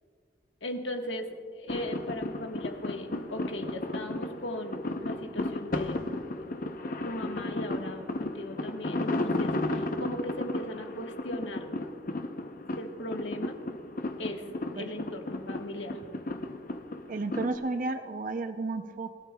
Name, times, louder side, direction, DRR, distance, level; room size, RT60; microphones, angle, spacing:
voice 1, 0.6-6.0 7.0-11.7 12.7-13.6 14.2-14.5 14.7-16.0, left 1 dB, 80° left, 3 dB, 1.4 m, -38 dB
sound 1, 1.7-17.5, left 2 dB, 45° left, 0.6 m, -34 dB
voice 2, 17.1-19.1, right 3 dB, 45° right, 8 dB, 0.5 m, -32 dB
27.5 x 13.0 x 2.3 m, 2.2 s
head